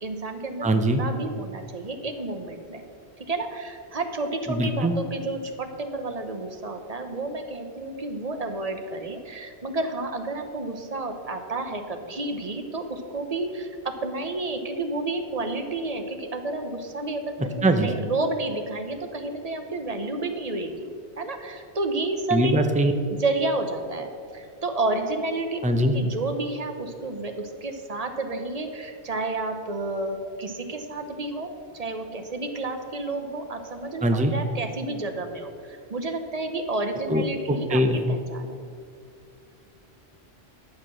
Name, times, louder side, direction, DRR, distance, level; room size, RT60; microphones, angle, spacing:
voice 1, 0.0-2.8 3.3-20.9 21.2-22.5 23.2-25.6 25.9-38.6, right 2 dB, 40° right, 6 dB, 0.9 m, -30 dB
voice 2, 0.6-1.0 4.5-4.9 17.6-17.9 22.3-22.9 25.6-25.9 34.0-34.3 37.1-37.2 37.5-38.0, right 1 dB, 10° right, 6 dB, 0.5 m, -21 dB
10.5 x 6.7 x 6.1 m, 2.4 s
omnidirectional pair, 1.1 m